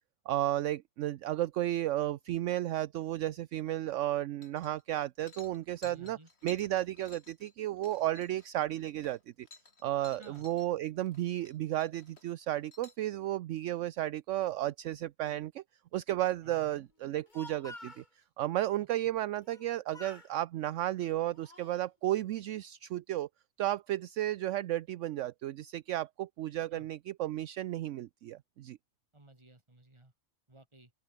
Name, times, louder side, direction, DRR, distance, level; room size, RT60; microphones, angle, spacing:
voice 1, 0.3-6.2 6.4-9.5 9.8-15.6 15.9-18.0 18.4-23.3 23.6-28.8, right 14 dB, 70° right, 0.9 m, -33 dB
sound 1, 4.4-4.9 5.2-10.7 11.0-11.5 11.8-13.0, left 3 dB, 50° left, 2.8 m, -55 dB
voice 2, 5.8-6.3 10.0-10.5 16.4-16.9 18.8-18.9 26.6-26.9 29.1-30.1 30.5-30.9, right 2 dB, 20° right, 2.7 m, -57 dB
Speech, 17.1-18.1 19.4-19.7 19.9-20.3 21.0-21.8, left 2 dB, 35° left, 3.5 m, -49 dB
open air
omnidirectional pair, 1.4 m